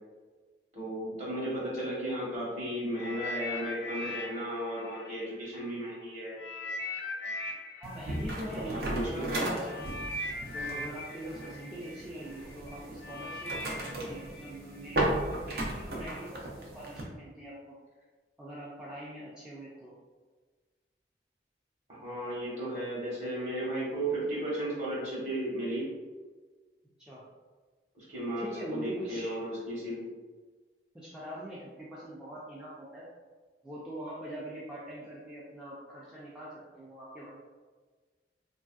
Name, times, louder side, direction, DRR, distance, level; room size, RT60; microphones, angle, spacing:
voice 1, 0.7-6.4 8.5-9.6 21.9-25.9 27.9-30.0, right 1 dB, 40° right, -6 dB, 1.2 m, -35 dB
sound 1, 3.0-5.9 6.4-15.3 16.1-16.2, left 1 dB, 80° left, 0.4 m, -40 dB
voice 2, 7.8-9.8 10.5-17.8 18.4-19.9 27.0-27.2 28.4-29.4 30.9-33.1 33.6-37.4, right 1 dB, 5° right, -8 dB, 0.3 m, -43 dB
sound 2, 7.8-17.0, right 1 dB, 60° right, 0.5 m, -36 dB
3.1 x 2.6 x 2.3 m, 1.4 s
head